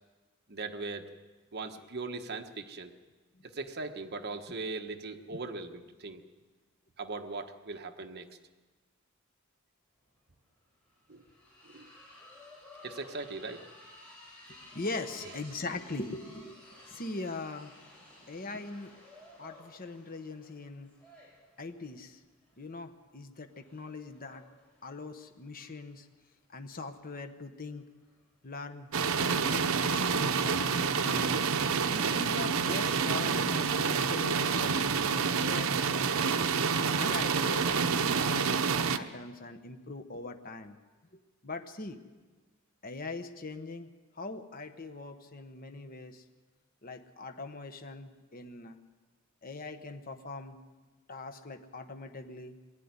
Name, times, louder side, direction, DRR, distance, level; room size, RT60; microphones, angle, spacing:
voice 1, 0.5-1.1 1.5-2.9 3.4-6.2 7.0-8.3 11.1-11.2 11.6-11.9 12.8-13.7, right 3 dB, 50° right, 5 dB, 1.3 m, -39 dB
sound 1, 10.0-10.1 10.3-29.2, left 1 dB, 5° left, 7.3 m, -56 dB
voice 2, 14.5-17.8 18.3-18.9 19.4-20.9 21.6-22.2 22.6-24.4 24.8-26.1 26.5-27.9 28.4-28.9 29.2-30.6 31.0-31.4 31.9-36.5 36.9-40.8 41.4-42.0 42.8-43.9 44.1-46.2 46.8-48.8 49.4-50.6 51.1-52.6, left 3 dB, 45° left, 7 dB, 1.2 m, -41 dB
sound 2, 28.9-39.0, right 5 dB, 75° right, 0.8 m, -28 dB
20.0 x 13.0 x 9.8 m, 1.3 s
head